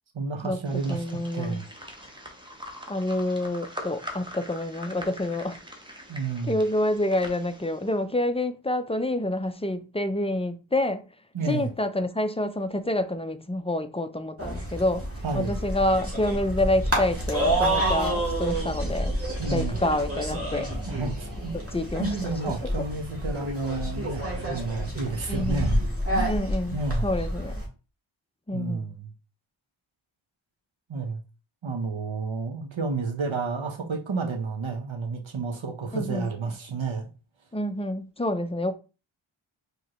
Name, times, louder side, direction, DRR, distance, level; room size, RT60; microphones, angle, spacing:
voice 1, 0.1-1.7 6.1-6.6 11.3-11.7 15.2-15.5 19.4-19.8 20.9-21.6 22.0-26.3 26.7-27.1 28.5-29.1 30.9-31.2 31.6-37.1, right 4 dB, 70° right, 1.0 m, -31 dB
sound 1, 0.6-7.9, equal, 10° right, 1.0 m, -43 dB
voice 2, 0.9-1.6 2.9-5.6 6.5-11.1 11.5-15.0 15.3-19.1 19.5-20.7 21.5-22.2 25.3-25.7 26.2-27.6 28.5-28.9 35.9-36.3 37.5-38.8, left 1 dB, 15° left, 0.4 m, -27 dB
sound 2, 14.4-27.7, right 1 dB, 30° right, 1.8 m, -29 dB
4.9 x 3.1 x 3.0 m
wide cardioid pair, 50°, 49 cm